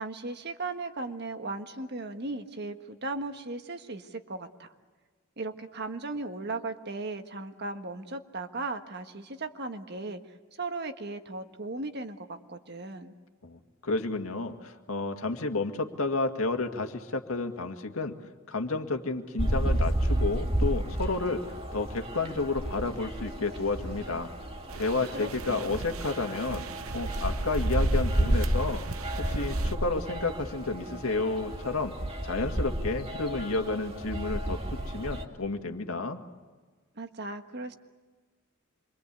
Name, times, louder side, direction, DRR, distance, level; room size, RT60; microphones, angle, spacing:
voice 1, 0.0-4.7 5.4-13.1 25.1-25.7 36.9-37.8, right 3 dB, 50° right, 7 dB, 1.5 m, -37 dB
voice 2, 13.4-18.1 18.5-21.4 21.7-24.3 24.8-26.6 26.9-31.9 32.2-36.2, left 3 dB, 80° left, 5 dB, 2.1 m, -31 dB
sound 1, 19.4-35.2, right 1 dB, 30° right, 2.4 m, -31 dB
sound 2, 24.7-29.7, right 4 dB, 75° right, 0.8 m, -39 dB
27.0 x 24.0 x 8.4 m, 1.4 s
head